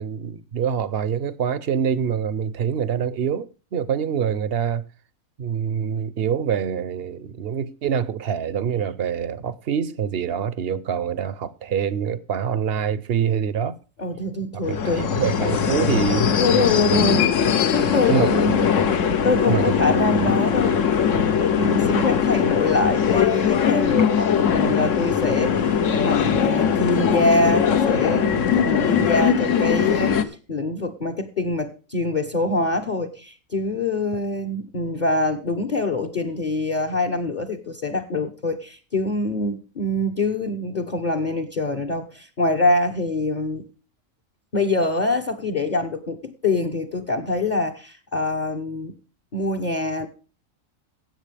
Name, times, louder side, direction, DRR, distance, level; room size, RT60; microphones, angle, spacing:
voice 1, 0.0-4.8 5.4-13.8 14.5-14.8 15.1-16.2 16.5-17.1 18.1-18.3 19.4-19.9 21.6-21.9, right 8 dB, 50° right, 0.8 m, -25 dB
voice 2, 14.0-15.1 15.6-15.7 16.4-18.7 19.0-20.8 21.4-30.1 30.5-43.6 44.5-48.9 49.3-50.1, left 2 dB, 35° left, 1.0 m, -24 dB
sound 1, 14.6-30.2, left 7 dB, 65° left, 1.3 m, -20 dB
16.5 x 7.9 x 3.4 m
omnidirectional pair, 1.4 m